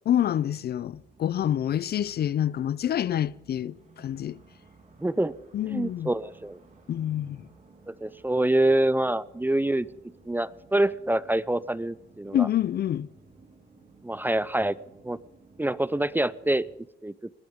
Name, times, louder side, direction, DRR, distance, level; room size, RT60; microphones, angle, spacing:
voice 1, 0.1-4.4 5.5-6.1 6.9-7.5 12.3-13.1, left 10 dB, 55° left, 0.5 m, -27 dB
sound 1, 0.9-16.8, right 3 dB, 40° right, 4.1 m, -56 dB
voice 2, 5.0-5.3 5.7-6.6 7.9-9.9 10.3-12.5 14.0-14.8 15.0-15.2 15.6-16.7 17.0-17.1, right 1 dB, 10° right, 0.5 m, -26 dB
21.0 x 17.0 x 3.7 m
cardioid pair, 90°, 20 cm